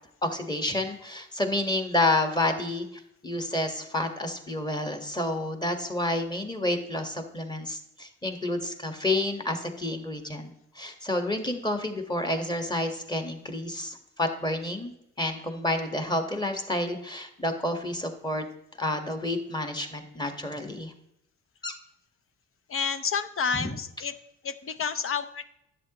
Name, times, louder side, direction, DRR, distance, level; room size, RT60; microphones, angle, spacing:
voice 1, 0.2-2.9 3.2-14.9 15.2-18.4 18.8-20.9 21.6-21.7 23.5-23.7, left 1 dB, 15° left, 6 dB, 1.5 m, -29 dB
voice 2, 22.7-24.1 24.4-25.4, left 6 dB, 45° left, 11 dB, 0.7 m, -29 dB
11.0 x 7.7 x 3.0 m, 0.83 s
cardioid pair, 90°, 30 cm